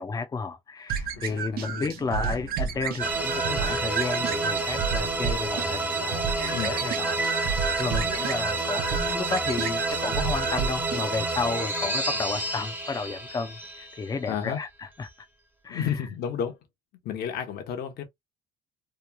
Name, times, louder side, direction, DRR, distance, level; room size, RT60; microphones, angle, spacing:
voice 1, 0.0-15.1 15.6-16.0, left 4 dB, 20° left, 0.5 m, -32 dB
sound 1, 0.9-11.0, right 7 dB, 60° right, 0.6 m, -31 dB
voice 2, 1.2-1.8 2.2-2.4 6.5-6.7 14.3-14.6 15.7-16.6 17.0-18.0, left 8 dB, 70° left, 0.9 m, -32 dB
sound 2, 3.0-14.4, right 2 dB, 10° right, 0.8 m, -29 dB
3.0 x 2.2 x 2.2 m
cardioid pair, 110°, 17 cm